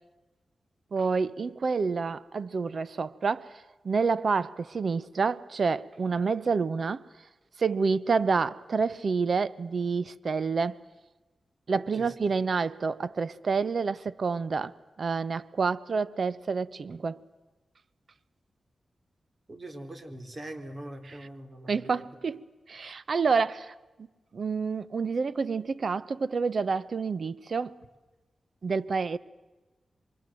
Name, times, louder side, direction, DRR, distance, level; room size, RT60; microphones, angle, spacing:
voice 1, 0.9-3.6 3.8-7.0 7.6-10.8 11.7-17.2 21.0-21.3 21.7-22.4 22.7-23.7 24.3-27.8 28.6-29.2, right 5 dB, 60° right, 1.0 m, -28 dB
voice 2, 11.7-12.1 19.5-21.9, right 1 dB, 40° right, 4.0 m, -42 dB
27.5 x 24.5 x 7.7 m
cardioid pair, 65°, 0 cm